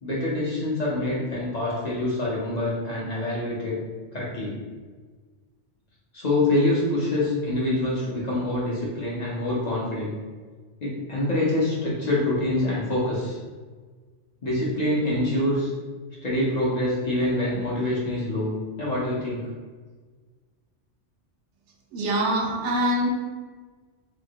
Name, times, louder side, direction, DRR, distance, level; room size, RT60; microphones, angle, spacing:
voice 1, 0.0-3.8 4.1-4.6 6.1-10.1 10.8-13.4 14.4-15.7 16.2-19.5, left 1 dB, 45° left, -7 dB, 0.7 m, -25 dB
voice 2, 21.9-23.1, right 1 dB, 80° right, -1 dB, 0.9 m, -24 dB
2.8 x 2.6 x 2.7 m, 1.4 s
omnidirectional pair, 1.2 m